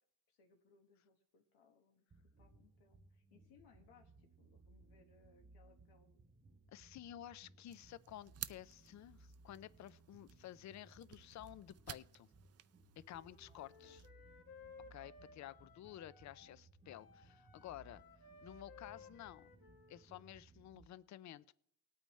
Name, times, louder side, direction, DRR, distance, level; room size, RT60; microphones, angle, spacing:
voice 1, 0.3-2.0 2.4-6.2 13.4-14.0, left 5 dB, 85° left, 2 dB, 1.5 m, -69 dB
sound 1, 2.1-20.9, right 3 dB, 20° right, 0.8 m, -64 dB
voice 2, 6.7-12.3 13.0-14.0 14.9-18.0 18.4-19.5 19.9-21.5, left 12 dB, 50° left, 18 dB, 0.5 m, -53 dB
sound 2, 7.7-14.1, right 11 dB, 40° right, 0.5 m, -55 dB
Wind instrument woodwind instrument, 13.1-16.6 16.8-20.4, left 4 dB, 65° left, 1.7 m, -60 dB
19.0 x 8.8 x 3.2 m, 0.68 s
cardioid pair, 115°, 38 cm